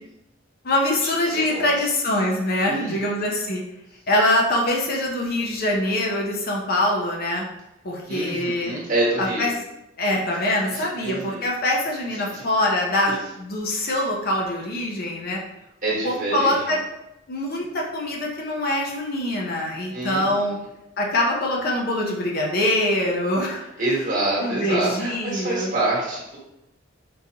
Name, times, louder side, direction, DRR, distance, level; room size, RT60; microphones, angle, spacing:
voice 1, 0.6-3.6 4.1-7.4 7.8-8.8 9.2-9.5 10.0-15.4 16.0-16.8 17.3-20.6 21.0-23.6 24.4-25.7, left 1 dB, 50° left, -1 dB, 0.6 m, -24 dB
voice 2, 1.2-1.9 2.7-3.3 8.0-9.5 10.7-11.4 12.3-12.4 13.1-13.2 15.8-16.7 19.9-20.7 23.8-26.4, right 2 dB, 40° right, -5 dB, 1.2 m, -27 dB
3.8 x 2.6 x 2.8 m, 0.89 s
head